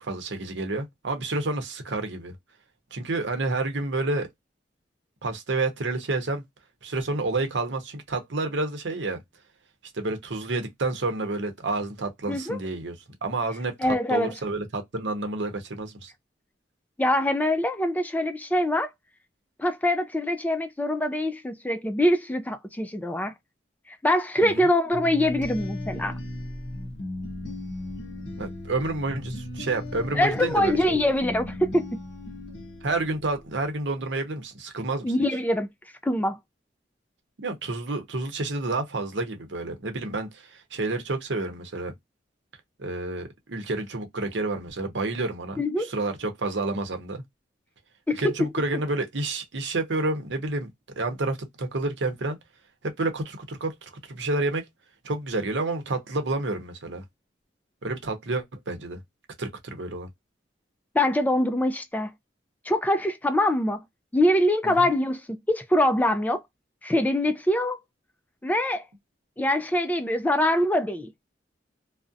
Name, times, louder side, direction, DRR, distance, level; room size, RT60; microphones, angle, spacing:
voice 1, 0.0-2.3 2.9-4.3 5.2-6.4 6.8-9.2 9.9-13.0 13.2-16.1 24.4-24.7 28.4-31.0 32.8-35.0 37.4-41.9 42.8-47.2 48.2-50.7 51.0-52.4 52.8-54.7 55.0-57.0 57.8-59.0 59.4-60.1 64.6-64.8, right 2 dB, 90° right, 0.8 m, -29 dB
voice 2, 12.3-12.6 13.8-14.3 17.0-18.9 19.6-23.3 24.0-26.2 30.1-31.9 35.0-35.7 36.0-36.4 45.6-45.9 48.1-48.5 60.9-62.1 62.7-63.8 64.1-66.4 66.8-67.8 68.4-68.8 69.4-71.1, left 1 dB, 10° left, 0.3 m, -24 dB
sound 1, 24.9-33.6, left 1 dB, 70° left, 0.7 m, -36 dB
2.4 x 2.0 x 2.5 m
head